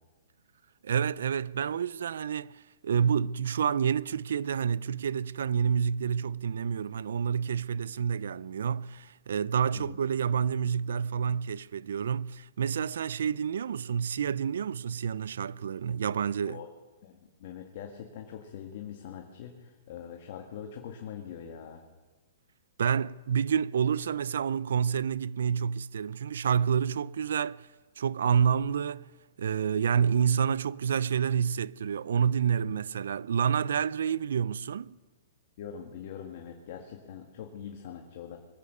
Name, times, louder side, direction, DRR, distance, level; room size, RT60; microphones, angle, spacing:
voice 1, 0.8-16.6 22.8-27.7 28.0-29.1 29.4-35.0, right 7 dB, 80° right, 0.4 m, -28 dB
voice 2, 17.0-21.8 35.6-38.4, left 8 dB, 50° left, 1.7 m, -43 dB
22.5 x 8.7 x 6.7 m
hypercardioid pair, 145°, 0 cm